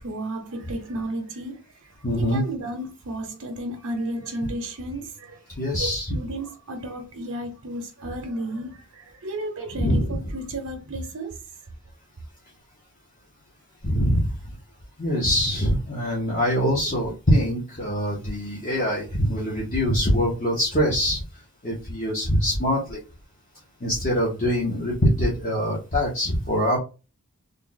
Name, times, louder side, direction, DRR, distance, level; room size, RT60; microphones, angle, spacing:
voice 1, 0.0-11.4, right 1 dB, 70° right, 0.7 m, -33 dB
voice 2, 2.0-2.4 5.6-6.1 9.8-10.0 13.8-14.4 15.0-21.2 21.6-23.0 23.8-26.8, equal, 35° left, 1.1 m, -23 dB
3.3 x 2.3 x 3.9 m
head